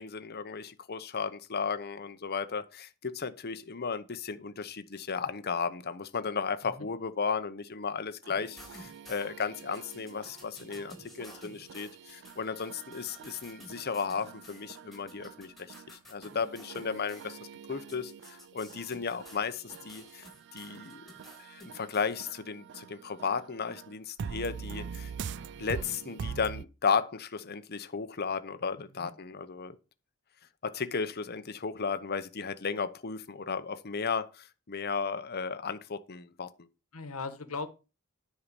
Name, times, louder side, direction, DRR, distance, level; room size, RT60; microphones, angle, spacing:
voice 1, 0.0-17.4 17.7-21.1 21.4-25.1 25.6-29.8 30.6-36.5, left 5 dB, 45° left, 0.8 m, -34 dB
sound 1, 8.2-26.6, right 6 dB, 55° right, 0.4 m, -45 dB
sound 2, 8.3-17.3 17.9-22.3, left 1 dB, ahead, 3.7 m, -53 dB
voice 2, 28.8-29.1 36.9-37.7, left 4 dB, 75° left, 1.4 m, -39 dB
10.0 x 5.6 x 5.3 m
head